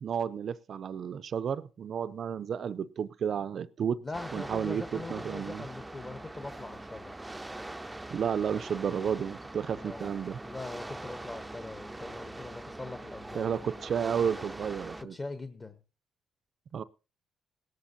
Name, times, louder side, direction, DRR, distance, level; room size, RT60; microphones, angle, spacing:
voice 1, 0.0-4.0 4.3-5.6 8.1-10.4 13.3-15.2 16.7-16.8, right 7 dB, 55° right, 0.5 m, -32 dB
voice 2, 4.0-7.2 9.8-10.1 10.4-13.7 15.0-15.7, left 3 dB, 25° left, 1.2 m, -42 dB
sound 1, 4.1-15.0, right 2 dB, 10° right, 0.6 m, -43 dB
17.0 x 13.0 x 2.8 m
cardioid pair, 90°, 0 cm